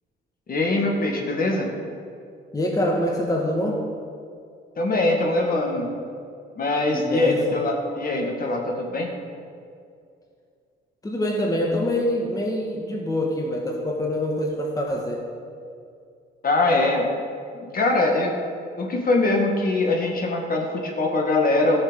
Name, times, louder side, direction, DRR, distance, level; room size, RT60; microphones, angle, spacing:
voice 1, 0.5-1.7 4.8-5.9 6.6-9.1 16.4-17.1 17.7-18.3 18.8-21.8, left 2 dB, 45° left, 1 dB, 2.0 m, -22 dB
voice 2, 2.5-3.8 6.9-7.4 11.0-15.2, left 1 dB, 15° left, -1 dB, 1.6 m, -25 dB
13.5 x 6.5 x 6.5 m, 2.4 s
cardioid pair, 90°, 20 cm